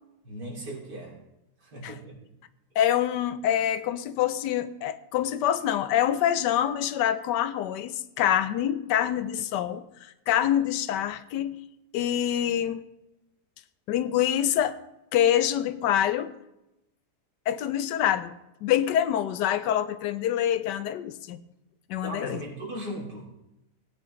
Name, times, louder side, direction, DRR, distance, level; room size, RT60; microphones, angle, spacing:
voice 1, 0.2-1.2 1.6-2.2 22.0-23.3, right 1 dB, 75° right, -3 dB, 3.5 m, -37 dB
voice 2, 2.8-11.6 11.9-12.8 13.9-14.8 15.1-16.3 17.5-18.4 18.6-21.4 21.9-22.4, left 10 dB, 90° left, 13 dB, 1.3 m, -26 dB
17.5 x 9.7 x 3.1 m, 0.92 s
omnidirectional pair, 1.8 m